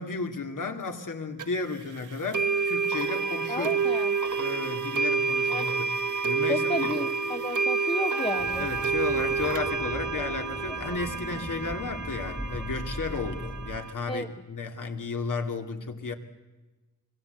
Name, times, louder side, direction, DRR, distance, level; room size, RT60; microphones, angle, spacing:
voice 1, 0.0-3.8 4.4-6.0 6.2-6.9 8.6-16.1, left 4 dB, 70° left, 5 dB, 2.7 m, -33 dB
sound 1, 1.4-1.5 2.3-13.9, right 5 dB, 65° right, 1.3 m, -29 dB
voice 2, 3.5-4.2 5.5-5.7 6.5-8.7 14.1-14.3, left 2 dB, 15° left, 7 dB, 0.9 m, -32 dB
sound 2, 8.4-13.8, equal, 5° right, 1.7 m, -39 dB
26.0 x 23.0 x 8.1 m, 1.1 s
wide cardioid pair, 115°, 33 cm